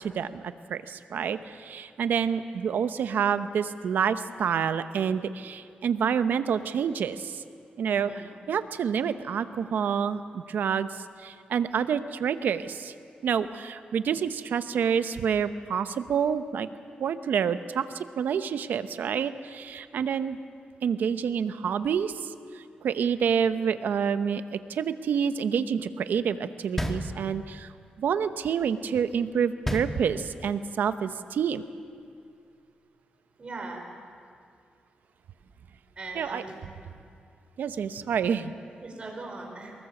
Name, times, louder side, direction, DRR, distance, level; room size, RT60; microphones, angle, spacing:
voice 1, 0.0-7.4 7.8-8.1 8.5-12.9 13.2-16.7 17.0-20.4 20.8-27.7 28.0-31.6 36.1-36.4 37.6-38.5, right 7 dB, 85° right, 11 dB, 0.9 m, -28 dB
voice 2, 7.9-8.2 10.5-10.6 33.4-33.8 36.0-36.5 38.8-39.7, right 3 dB, 40° right, 1 dB, 5.6 m, -40 dB
sound 1, 26.8-27.7 29.6-30.6, equal, 10° left, 1.8 m, -32 dB
24.0 x 21.0 x 7.2 m, 2.3 s
cardioid pair, 95°, 3 cm